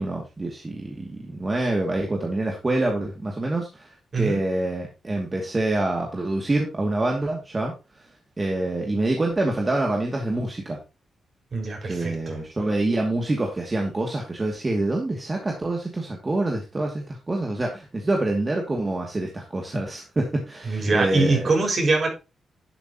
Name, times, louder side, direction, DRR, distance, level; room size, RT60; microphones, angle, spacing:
voice 1, 0.0-7.7 8.4-10.8 11.9-21.5, right 2 dB, 30° right, 0 dB, 2.5 m, -26 dB
voice 2, 11.5-12.4 20.6-22.1, right 3 dB, 50° right, 2 dB, 5.5 m, -23 dB
11.5 x 8.1 x 3.0 m, 0.28 s
cardioid pair, 70°, 0 cm